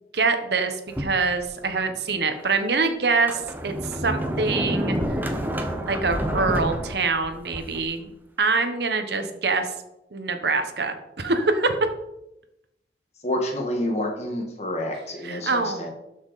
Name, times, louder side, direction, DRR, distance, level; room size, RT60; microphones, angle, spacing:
voice 1, 0.1-3.7 4.0-5.0 5.9-8.1 8.4-9.7 10.1-11.9 15.2-15.9, right 4 dB, 60° right, 7 dB, 1.1 m, -24 dB
Sliding door, 0.9-1.8 2.4-2.5 3.1-7.9, equal, 10° right, 0.8 m, -29 dB
voice 2, 13.2-15.9, left 1 dB, 35° left, 2 dB, 1.6 m, -28 dB
12.5 x 6.0 x 4.1 m, 0.88 s
head